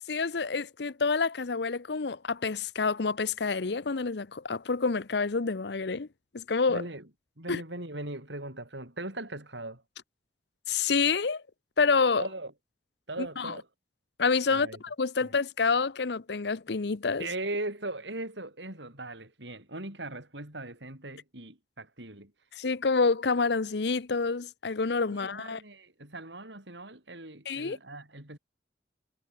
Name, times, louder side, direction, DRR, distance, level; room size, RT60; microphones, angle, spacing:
voice 1, 0.1-6.1 6.3-6.8 7.5-7.6 10.7-11.4 11.8-12.2 13.2-13.6 14.2-17.3 22.5-25.6 27.5-27.8, left 4 dB, 65° left, 0.7 m, -28 dB
voice 2, 6.7-7.0 7.4-9.8 12.2-12.5 13.1-13.7 14.5-14.8 17.2-22.3 25.1-28.4, right 2 dB, 75° right, 7.7 m, -39 dB
head